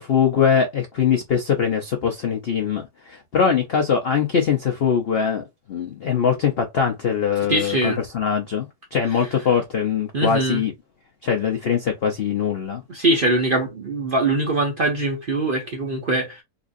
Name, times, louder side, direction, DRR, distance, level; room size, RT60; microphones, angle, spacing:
voice 1, 0.0-10.7 11.2-12.8, left 7 dB, 70° left, 0.5 m, -22 dB
voice 2, 7.5-8.0 10.1-10.6 12.9-16.4, right 2 dB, 45° right, 0.7 m, -22 dB
4.0 x 2.5 x 2.5 m
omnidirectional pair, 1.8 m